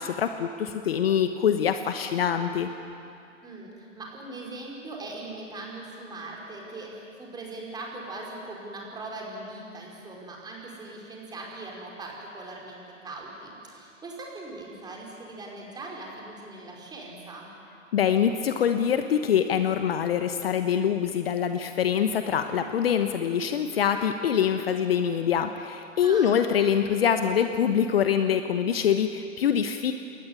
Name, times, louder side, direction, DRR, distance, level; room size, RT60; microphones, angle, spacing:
voice 1, 0.0-2.7 17.9-29.9, left 8 dB, 50° left, 8 dB, 1.2 m, -24 dB
voice 2, 3.4-17.5 26.0-26.4, right 2 dB, 10° right, -2 dB, 4.9 m, -40 dB
21.5 x 19.0 x 9.9 m, 2.6 s
figure-of-eight pair, 125°, 39 cm